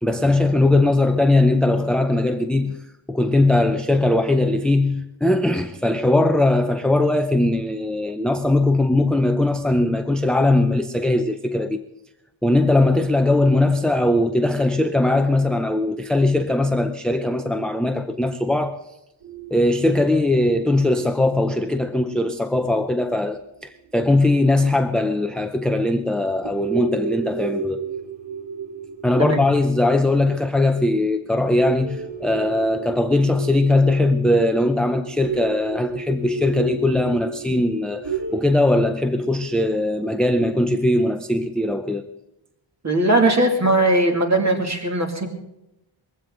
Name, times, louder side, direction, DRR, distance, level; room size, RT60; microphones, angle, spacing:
voice 1, 0.0-2.8 3.1-11.8 12.4-18.8 19.5-27.8 29.0-42.1, left 2 dB, ahead, 0.5 m, -20 dB
sound 1, 19.2-23.1 23.6-23.7 24.8-24.9 25.4-25.5 25.9-26.1 26.4-38.5, right 3 dB, 55° right, 2.8 m, -33 dB
voice 2, 42.8-45.3, right 2 dB, 35° right, 2.6 m, -19 dB
21.0 x 15.5 x 3.9 m
wide cardioid pair, 150°, 49 cm